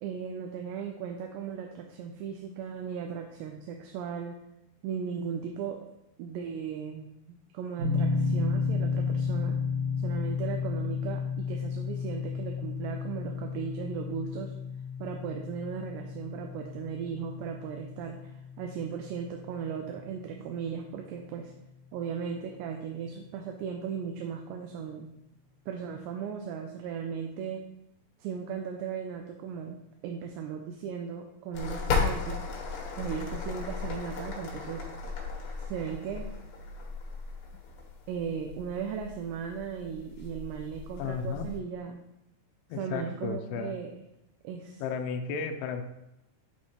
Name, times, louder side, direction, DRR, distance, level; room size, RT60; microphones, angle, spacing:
voice 1, 0.0-4.4 4.8-5.8 6.2-7.1 7.5-9.6 10.0-14.5 15.0-21.5 21.9-25.1 25.7-27.6 28.2-29.8 30.0-32.4 32.9-34.9 35.6-36.3 38.1-42.0 42.8-43.9 44.4-44.8, right 7 dB, 80° right, 3 dB, 2.6 m, -37 dB
sound 1, 7.8-20.7, left 5 dB, 60° right, 1.7 m, -33 dB
sound 2, 31.5-41.6, left 4 dB, 65° left, 2.6 m, -35 dB
voice 2, 41.0-41.5 42.7-43.8 44.8-45.8, left 6 dB, 85° left, 4 dB, 2.3 m, -33 dB
11.0 x 4.3 x 3.1 m, 0.86 s
omnidirectional pair, 5.1 m